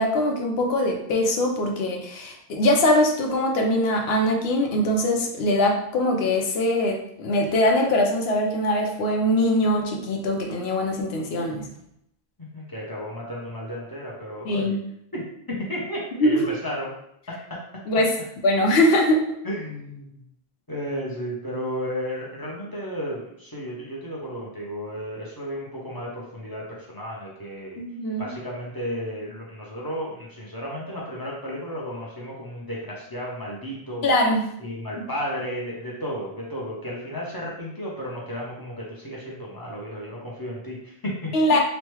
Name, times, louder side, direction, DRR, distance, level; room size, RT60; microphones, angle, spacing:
voice 1, 0.0-11.7 14.5-14.8 16.2-16.5 17.9-18.1 18.4-19.2 27.8-28.3 34.0-34.4 35.0-35.1 41.3-41.6, left 1 dB, 80° left, 2 dB, 0.8 m, -22 dB
voice 2, 12.4-14.8 15.1-15.2 15.5-16.9 17.3-17.6 19.4-20.2 20.7-27.8 28.2-34.1 34.6-41.6, equal, 25° left, -5 dB, 0.6 m, -33 dB
3.0 x 2.2 x 3.0 m, 0.75 s
omnidirectional pair, 1.1 m